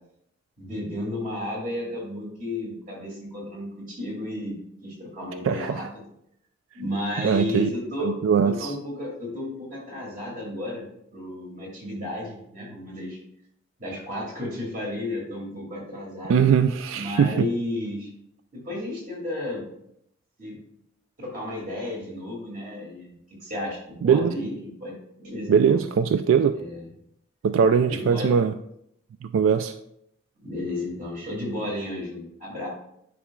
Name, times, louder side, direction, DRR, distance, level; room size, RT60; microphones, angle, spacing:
voice 1, 0.6-5.9 6.7-8.1 8.4-10.8 11.1-13.2 13.8-16.4 16.9-18.1 18.5-19.7 20.4-20.5 21.2-23.1 23.4-25.8 26.5-26.9 27.9-28.4 30.4-32.7, left 1 dB, 45° right, -3 dB, 2.3 m, -33 dB
voice 2, 5.4-5.8 7.2-7.7 8.0-8.7 16.3-17.5 24.0-24.3 25.5-26.6 27.4-28.5 29.2-29.7, right 7 dB, 85° right, 10 dB, 0.3 m, -21 dB
10.0 x 4.9 x 2.3 m, 0.75 s
head